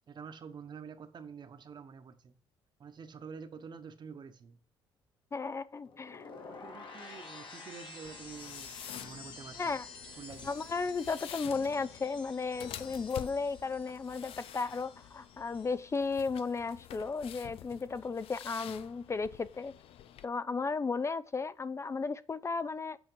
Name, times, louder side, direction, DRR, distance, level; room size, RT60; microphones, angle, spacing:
voice 1, 0.1-2.3 2.8-4.6 6.4-9.8 10.1-10.5, right 6 dB, 45° right, 1.1 m, -48 dB
voice 2, 5.3-6.3 9.6-9.8 10.4-19.7 20.2-23.0, left 4 dB, 30° left, 0.4 m, -34 dB
sound 1, 5.8-16.0 16.2-16.7, left 3 dB, 55° left, 1.9 m, -50 dB
sound 2, 8.0-20.3, left 11 dB, 70° left, 0.6 m, -49 dB
8.3 x 4.3 x 4.7 m
supercardioid pair, 75°, 10 cm